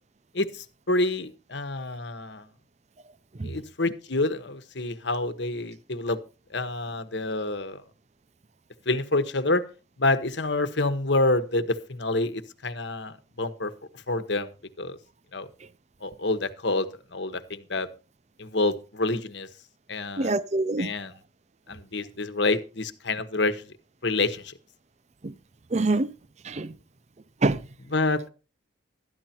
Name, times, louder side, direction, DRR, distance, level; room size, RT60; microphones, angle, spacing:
voice 1, 0.3-2.5 3.4-6.2 6.5-7.8 8.8-9.6 10.0-13.7 14.1-14.5 14.8-15.0 15.3-15.5 16.0-17.9 18.4-19.5 19.9-20.3 20.8-21.1 21.7-23.7 24.0-24.5 27.9-28.3, left 2 dB, 65° left, 1.2 m, -27 dB
voice 2, 20.2-20.9 25.2-25.3 25.7-26.1 26.4-26.8 27.4-27.6, right 2 dB, 35° right, 0.5 m, -25 dB
13.0 x 10.5 x 4.4 m
head